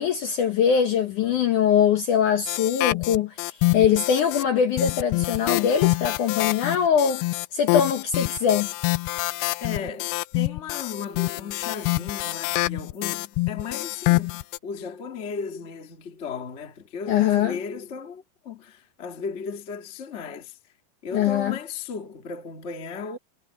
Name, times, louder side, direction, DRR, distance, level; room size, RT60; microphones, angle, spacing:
voice 1, 0.0-7.2 7.5-8.7 17.1-17.6 21.1-21.6, left 8 dB, 65° left, 2.0 m, -22 dB
sound 1, 2.5-4.4 4.8-14.6, left 21 dB, 85° left, 2.2 m, -26 dB
voice 2, 9.6-20.6 21.0-23.2, left 5 dB, 35° left, 1.1 m, -35 dB
omnidirectional pair, 4.9 m